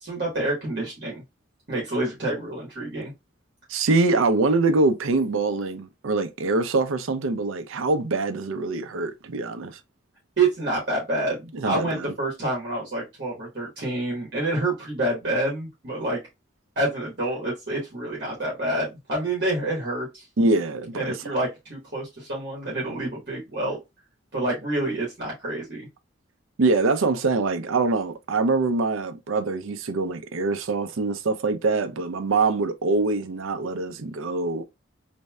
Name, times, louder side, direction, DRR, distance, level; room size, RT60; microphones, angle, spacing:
voice 1, 0.0-1.2 1.7-3.1 10.4-16.2 16.8-20.2 20.9-23.8 24.3-25.9, right 2 dB, 55° right, 1.1 m, -28 dB
voice 2, 3.7-9.8 11.5-12.1 20.4-21.1 26.6-34.6, right 3 dB, 90° right, 0.5 m, -24 dB
3.1 x 2.6 x 2.2 m
head